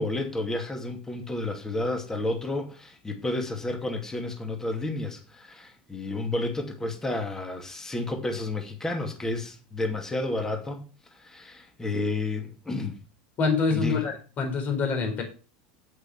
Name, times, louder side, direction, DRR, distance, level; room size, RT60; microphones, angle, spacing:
voice 1, 0.0-10.8 11.1-13.0 13.7-14.1, left 2 dB, 10° left, 2.5 m, -31 dB
voice 2, 13.4-15.2, left 4 dB, 40° left, 4.4 m, -26 dB
8.4 x 8.1 x 5.7 m
supercardioid pair, 110°, 4 cm